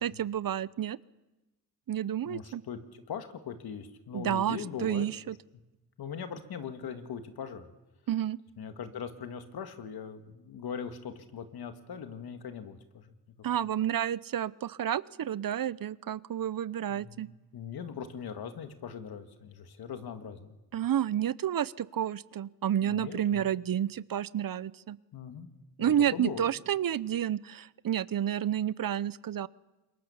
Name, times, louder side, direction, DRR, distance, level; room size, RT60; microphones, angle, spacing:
voice 1, 0.0-1.0 1.9-2.6 4.1-5.4 8.1-8.4 13.4-17.3 20.7-25.0 25.8-29.5, right 10 dB, 65° right, 19 dB, 0.8 m, -30 dB
voice 2, 2.3-5.1 6.0-7.7 8.6-13.1 16.9-20.6 22.8-23.5 25.1-25.5 25.8-26.5, left 7 dB, 90° left, 8 dB, 2.0 m, -40 dB
27.0 x 23.0 x 7.1 m, 1.0 s
cardioid pair, 50°, 37 cm